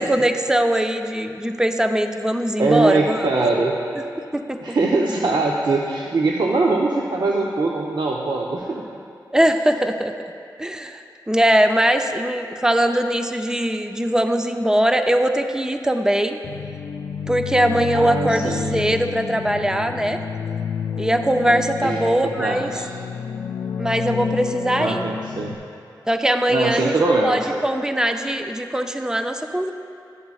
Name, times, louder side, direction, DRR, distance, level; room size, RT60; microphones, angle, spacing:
voice 1, 0.0-3.2 4.0-4.8 9.3-10.1 10.6-16.4 17.3-20.2 21.0-22.7 23.8-25.1 26.1-27.0 27.2-29.7, right 1 dB, 10° right, 6 dB, 0.5 m, -21 dB
voice 2, 2.6-3.8 4.6-8.8 17.9-18.8 21.8-22.8 24.8-25.6 26.5-27.6, right 3 dB, 65° right, -2 dB, 0.6 m, -22 dB
sound 1, 16.4-25.5, left 7 dB, 75° left, 0.4 m, -30 dB
11.5 x 7.9 x 2.4 m, 2.5 s
cardioid pair, 45°, 8 cm